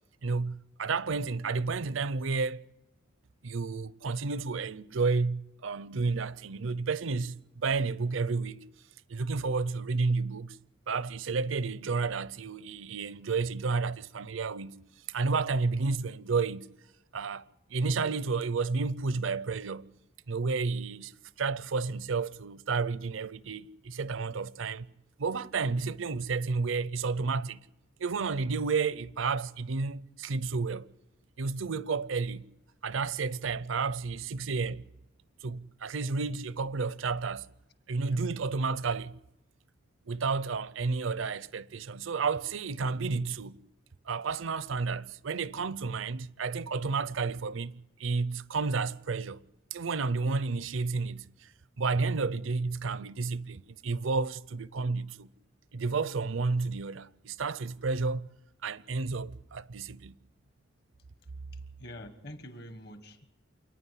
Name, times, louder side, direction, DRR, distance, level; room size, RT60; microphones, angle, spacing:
voice 1, 0.2-2.6 3.4-8.7 9.1-10.6 10.9-14.8 15.1-16.7 17.1-17.4 17.7-19.9 20.3-21.1 21.4-24.9 25.2-27.6 28.0-30.9 31.4-32.5 32.8-34.8 35.4-37.5 37.9-39.2 40.1-43.6 44.1-47.7 48.0-49.4 49.7-51.5 51.8-55.3 55.7-58.3 58.6-60.1, right 4 dB, 75° right, 0.6 m, -31 dB
voice 2, 61.5-63.3, left 1 dB, 50° left, 1.5 m, -46 dB
28.0 x 9.6 x 9.9 m
head